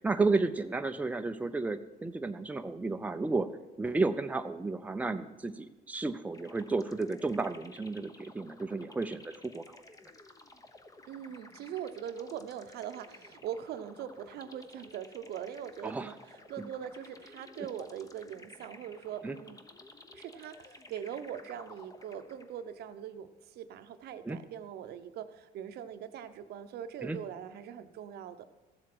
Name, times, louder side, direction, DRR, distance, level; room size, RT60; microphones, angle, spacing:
voice 1, 0.0-3.5 3.8-9.8 15.8-16.1 19.2-19.4 24.2-24.4 27.0-27.2, right 3 dB, 10° right, 7 dB, 0.5 m, -32 dB
sound 1, 6.3-22.7, left 2 dB, 20° left, 0.9 m, -54 dB
voice 2, 11.1-19.6 20.1-28.5, right 9 dB, 70° right, 10 dB, 0.8 m, -42 dB
14.5 x 7.5 x 6.1 m, 1.1 s
cardioid pair, 110°, 17 cm